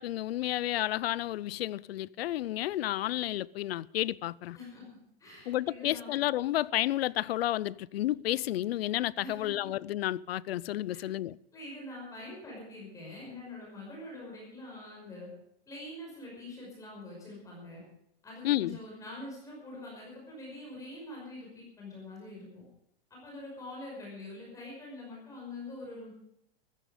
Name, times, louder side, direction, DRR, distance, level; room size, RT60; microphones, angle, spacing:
voice 1, 0.0-4.6 5.5-11.4 18.4-18.8, left 14 dB, 80° left, 0.6 m, -31 dB
voice 2, 5.2-6.2 9.2-9.6 10.9-11.1 11.5-15.3 15.7-17.8 18.2-22.6 23.1-26.1, left 2 dB, 10° left, 5.5 m, -45 dB
15.5 x 15.0 x 5.1 m
supercardioid pair, 170°, 30 cm